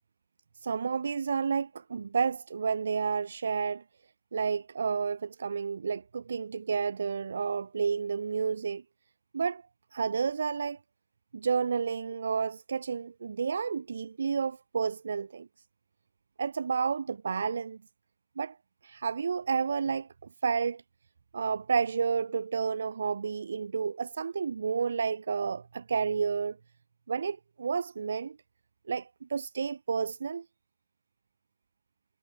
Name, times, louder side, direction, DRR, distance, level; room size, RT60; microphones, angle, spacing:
voice 1, 0.6-3.8 4.3-8.8 9.3-9.6 9.9-10.8 11.3-15.5 16.4-17.8 18.4-18.6 18.8-20.1 20.4-20.8 21.3-26.6 27.1-28.4 28.9-30.4, right 5 dB, 80° right, 4.9 m, -30 dB
hypercardioid pair, 170°, 0 cm